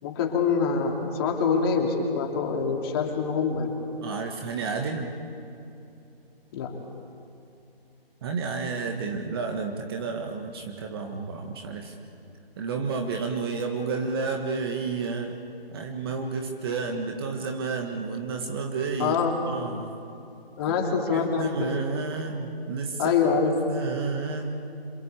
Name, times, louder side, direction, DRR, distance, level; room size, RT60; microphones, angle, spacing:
voice 1, 0.0-3.7 6.5-6.8 19.0-19.3 20.6-21.5 23.0-23.5, left 5 dB, 25° left, 1 dB, 3.2 m, -25 dB
voice 2, 4.0-5.1 8.2-12.0 12.6-15.4 15.7-19.2 19.5-19.9 20.7-23.1 23.7-24.6, right 4 dB, 25° right, 3 dB, 1.7 m, -31 dB
27.0 x 26.0 x 8.4 m, 2.7 s
figure-of-eight pair, 150°, 30 cm